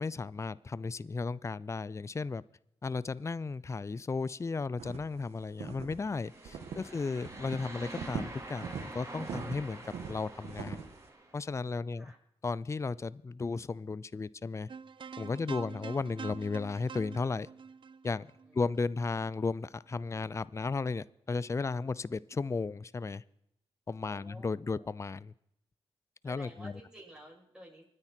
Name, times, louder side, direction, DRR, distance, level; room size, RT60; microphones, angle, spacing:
voice 1, 0.0-2.4 2.8-9.8 10.1-10.8 11.3-12.1 12.4-14.7 15.2-17.5 18.0-18.3 18.5-23.2 23.9-25.3 26.2-26.7, left 4 dB, 30° left, 0.5 m, -34 dB
sound 1, 4.8-5.2 5.6-6.0 6.5-6.9 7.2-7.6 7.9-8.9 9.2-11.0, right 7 dB, 85° right, 1.7 m, -40 dB
sound 2, 6.0-11.4, right 2 dB, 30° right, 4.0 m, -46 dB
sound 3, 14.7-19.0, right 6 dB, 50° right, 0.8 m, -46 dB
voice 2, 15.5-15.9 18.4-19.6 24.0-24.5 24.7-24.9 26.2-27.8, right 1 dB, 10° right, 7.6 m, -55 dB
24.5 x 9.9 x 4.4 m
cardioid pair, 60°, 11 cm